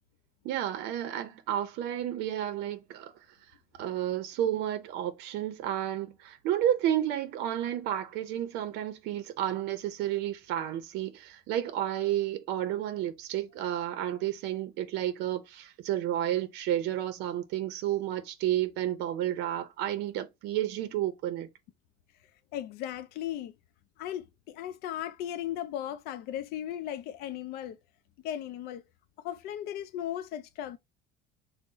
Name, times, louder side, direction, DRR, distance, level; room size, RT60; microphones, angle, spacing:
voice 1, 0.4-3.1 3.8-21.5, right 11 dB, 60° right, 0.6 m, -31 dB
voice 2, 22.5-23.5 24.0-27.8 28.2-28.8 29.2-30.8, left 11 dB, 55° left, 0.4 m, -36 dB
3.9 x 2.1 x 3.7 m
cardioid pair, 170°, 19 cm